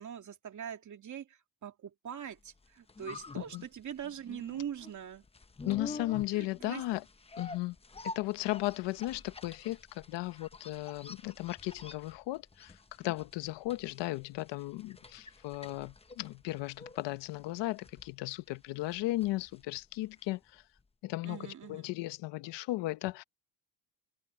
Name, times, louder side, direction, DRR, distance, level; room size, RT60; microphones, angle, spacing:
voice 1, 0.0-5.2 6.3-6.8 21.2-21.9, right 9 dB, 45° right, 2.7 m, -42 dB
sound 1, 2.5-20.5 20.8-20.9, left 3 dB, 15° left, 0.9 m, -48 dB
voice 2, 5.7-7.0 7.4-7.8 8.0-20.6 21.0-23.2, left 18 dB, 90° left, 1.0 m, -36 dB
cardioid pair, 120°, 41 cm